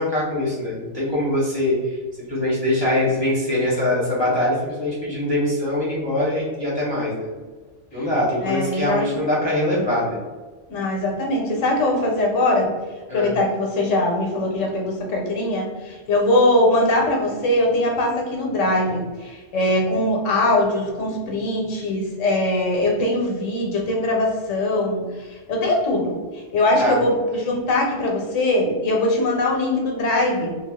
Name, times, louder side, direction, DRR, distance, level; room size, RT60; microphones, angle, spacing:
voice 1, 0.0-7.3 7.9-10.2 13.1-13.3 26.8-27.0, left 1 dB, 30° left, -8 dB, 0.6 m, -23 dB
voice 2, 8.4-9.0 10.7-12.7 13.1-30.5, left 1 dB, 85° left, -1 dB, 1.0 m, -21 dB
2.3 x 2.2 x 3.4 m, 1.3 s
omnidirectional pair, 1.3 m